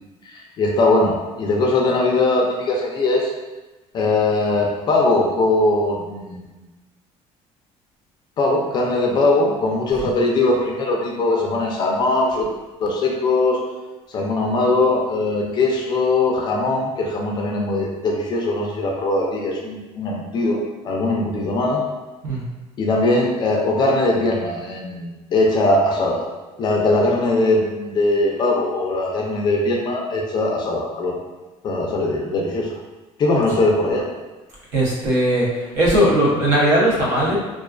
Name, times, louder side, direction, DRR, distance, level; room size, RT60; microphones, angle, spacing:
voice 1, 0.2-3.3 3.9-6.5 8.4-12.5 12.8-13.6 14.1-21.8 22.8-26.3 26.6-31.1 31.6-32.8 33.2-34.0, left 2 dB, 35° left, -1 dB, 0.4 m, -20 dB
voice 2, 34.7-37.3, right 1 dB, 75° right, -5 dB, 0.8 m, -18 dB
2.3 x 2.2 x 2.3 m, 1.1 s
cardioid pair, 170°, 13 cm